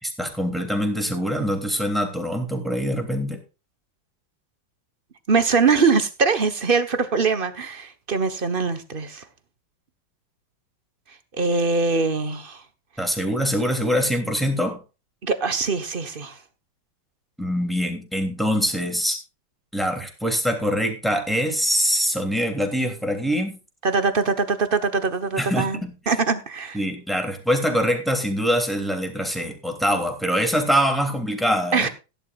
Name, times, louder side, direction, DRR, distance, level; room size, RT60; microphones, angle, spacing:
voice 1, 0.0-3.4 13.0-14.8 17.4-19.2 19.7-23.5 25.4-25.9 26.7-31.9, equal, ahead, 3.0 m, -24 dB
voice 2, 5.3-9.2 11.4-12.6 15.2-16.4 23.8-25.8 26.1-26.8 31.7-31.9, right 4 dB, 35° right, 1.1 m, -22 dB
16.5 x 11.0 x 2.5 m
omnidirectional pair, 2.2 m